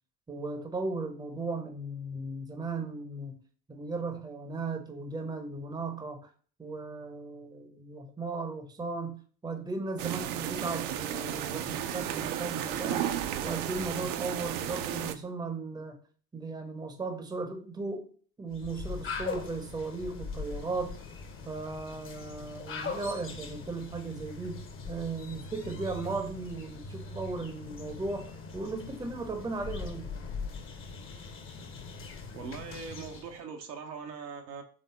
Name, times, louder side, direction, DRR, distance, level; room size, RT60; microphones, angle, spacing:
voice 1, 0.3-3.4 3.7-6.3 6.6-13.2 13.4-16.0 16.3-18.1 18.4-21.0 21.4-30.1, right 3 dB, 10° right, 6 dB, 0.6 m, -36 dB
sound 1, 10.0-15.2, right 11 dB, 50° right, 0.5 m, -33 dB
sound 2, 18.5-33.4, left 4 dB, 25° left, 0.7 m, -41 dB
voice 2, 32.3-34.6, right 5 dB, 80° right, 3 dB, 0.9 m, -41 dB
4.0 x 3.5 x 3.8 m, 0.43 s
figure-of-eight pair, 60°, 49 cm